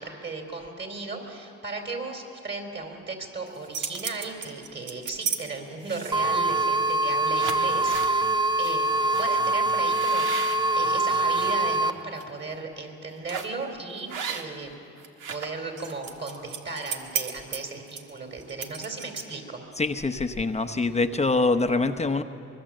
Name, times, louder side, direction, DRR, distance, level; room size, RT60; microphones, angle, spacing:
voice 1, 0.0-8.3 8.6-8.9 9.2-14.8 15.3-19.6, right 3 dB, 35° right, 3 dB, 4.3 m, -36 dB
sound 1, 3.5-5.4 5.8-6.3 6.9-7.0 7.3-8.1 8.6-8.8 9.1-9.3 9.8-11.5 12.0-12.2 13.3-13.6 14.1-14.7 15.0-19.5, right 7 dB, 85° right, 1.8 m, -35 dB
sound 2, 6.1-11.9, right 2 dB, 15° right, 0.6 m, -24 dB
voice 2, 19.8-22.2, left 3 dB, 20° left, 8 dB, 0.9 m, -24 dB
24.0 x 22.0 x 7.7 m, 2.6 s
cardioid pair, 90°, 30 cm